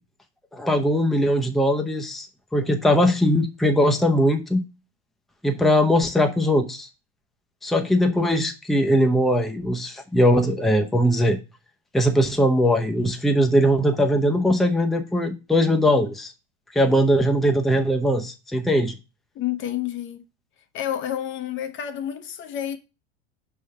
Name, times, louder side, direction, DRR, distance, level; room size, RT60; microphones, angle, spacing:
voice 1, 0.5-2.3 2.5-4.6 5.4-6.9 7.6-11.4 11.9-16.3 16.7-18.9, equal, ahead, 0.7 m, -20 dB
voice 2, 19.3-20.2 20.7-22.8, left 11 dB, 35° left, 0.7 m, -29 dB
5.3 x 3.5 x 5.5 m
hypercardioid pair, 95°, 33 cm